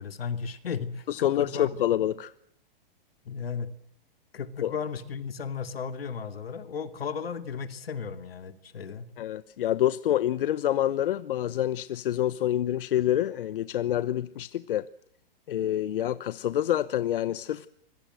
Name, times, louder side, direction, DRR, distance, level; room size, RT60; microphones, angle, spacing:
voice 1, 0.0-1.8 3.2-3.7 4.3-9.1, left 6 dB, 85° left, 2.6 m, -35 dB
voice 2, 1.1-2.3 4.6-4.7 9.2-14.8 15.5-17.7, left 11 dB, 65° left, 0.9 m, -27 dB
25.5 x 21.5 x 7.9 m
hypercardioid pair, 145°, 29 cm